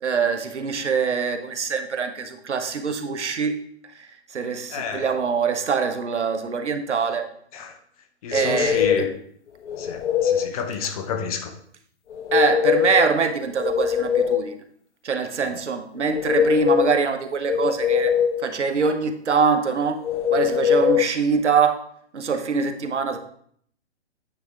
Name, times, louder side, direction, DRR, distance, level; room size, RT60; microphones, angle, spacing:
voice 1, 0.0-3.5 4.3-7.3 8.3-8.8 12.3-14.6 15.0-18.1 18.4-20.0 20.3-21.8 22.1-23.2, right 5 dB, 90° right, 8 dB, 0.8 m, -23 dB
voice 2, 4.7-5.2 7.5-7.8 8.2-9.1 9.8-11.5 15.5-15.6, left 6 dB, 35° left, 7 dB, 0.7 m, -30 dB
sound 1, 8.3-9.2 9.7-10.5 12.1-13.1 13.5-14.6 16.0-17.0 17.5-18.5 20.0-21.1, left 8 dB, 85° left, 0.5 m, -22 dB
9.0 x 3.5 x 3.7 m, 0.64 s
hypercardioid pair, 135°, 34 cm